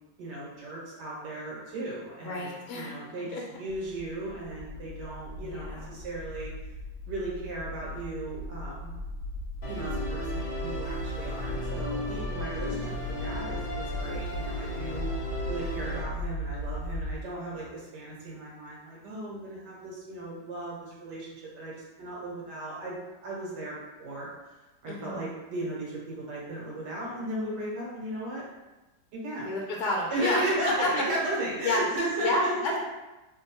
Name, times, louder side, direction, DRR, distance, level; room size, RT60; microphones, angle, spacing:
voice 1, 0.2-6.5 7.0-8.9 9.7-15.1 15.5-23.0 23.2-24.3 24.8-28.4 29.1-29.5 30.1-32.8, right 1 dB, 90° right, -6 dB, 1.6 m, -35 dB
voice 2, 2.2-2.9 3.3-3.4 5.4-5.9 24.9-25.2 29.5-30.4 30.8-31.0 31.6-31.8 32.2-32.8, left 2 dB, 75° left, -2 dB, 1.0 m, -30 dB
sound 1, 3.7-17.2, left 1 dB, 65° right, 0.9 m, -37 dB
Musical instrument, 9.6-16.0, equal, 50° left, 0.7 m, -36 dB
3.3 x 2.2 x 4.2 m, 1.1 s
omnidirectional pair, 1.8 m